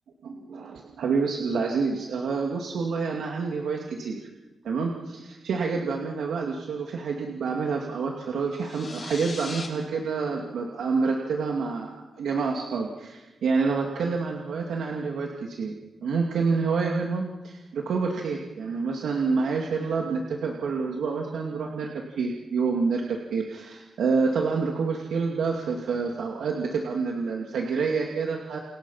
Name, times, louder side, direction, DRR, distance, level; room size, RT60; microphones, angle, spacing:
voice 1, 0.2-4.2 4.6-15.7 16.0-28.6, right 4 dB, 85° right, 0 dB, 2.5 m, -28 dB
sound 1, 8.5-9.7, left 4 dB, 35° left, 4.3 m, -39 dB
29.5 x 29.0 x 5.8 m, 1.2 s
wide cardioid pair, 170°, 0 cm